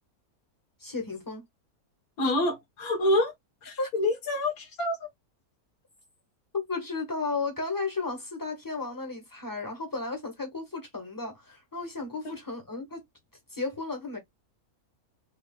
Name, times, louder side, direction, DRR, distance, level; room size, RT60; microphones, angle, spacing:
voice 1, 0.8-1.5 3.8-3.9 6.5-13.0 13.5-14.2, left 3 dB, 15° left, 1.5 m, -34 dB
voice 2, 2.2-3.3 3.6-5.1 12.3-12.4, left 1 dB, 75° left, 1.7 m, -27 dB
5.2 x 3.1 x 2.3 m
omnidirectional pair, 1.6 m